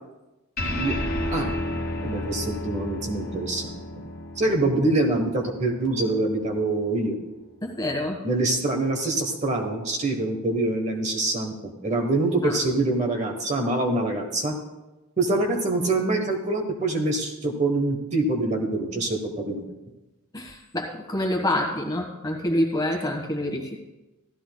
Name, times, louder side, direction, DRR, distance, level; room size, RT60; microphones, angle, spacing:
sound 1, 0.6-7.3, left 1 dB, 45° left, 1.7 m, -32 dB
voice 1, 2.0-4.1 4.4-7.2 8.2-14.6 15.2-19.7, right 2 dB, 30° right, 2 dB, 1.0 m, -25 dB
voice 2, 7.6-8.2 12.4-12.5 20.3-23.8, left 1 dB, 15° left, 1 dB, 1.4 m, -27 dB
15.5 x 12.5 x 2.2 m, 1.1 s
head